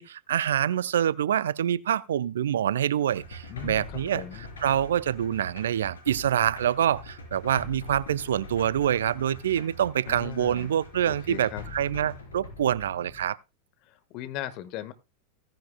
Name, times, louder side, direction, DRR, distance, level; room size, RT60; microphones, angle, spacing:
voice 1, 0.0-4.2 4.6-13.4, right 10 dB, 65° right, 0.5 m, -26 dB
sound 1, 3.1-13.3, left 2 dB, 75° left, 4.4 m, -43 dB
voice 2, 3.5-4.4 10.1-10.7 11.0-11.6 13.8-14.9, left 12 dB, 45° left, 1.4 m, -38 dB
17.0 x 10.5 x 2.2 m
figure-of-eight pair, 90°, 0 cm